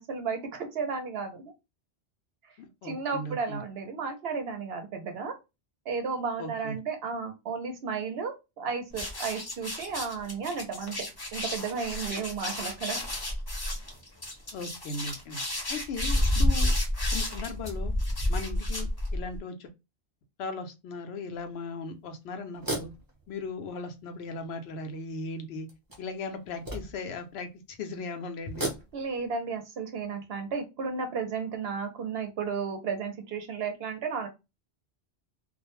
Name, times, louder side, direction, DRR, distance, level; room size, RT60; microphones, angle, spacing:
voice 1, 0.0-1.5 2.8-5.3 5.9-11.0 11.3-13.0 28.9-34.3, right 5 dB, 70° right, 6 dB, 0.9 m, -33 dB
voice 2, 2.6-3.6 6.4-6.8 14.5-15.4 15.7-16.7 17.1-17.9 18.3-19.7 20.4-22.9 23.3-25.7 26.0-28.7, left 3 dB, 75° left, 6 dB, 0.8 m, -37 dB
sound 1, 8.9-19.4, left 1 dB, 25° left, 0.7 m, -30 dB
sound 2, 21.4-21.5 22.5-23.9 24.5-24.6 25.7-27.2 28.4-29.3, right 2 dB, 20° right, 0.8 m, -37 dB
2.4 x 2.1 x 2.9 m, 0.25 s
omnidirectional pair, 1.1 m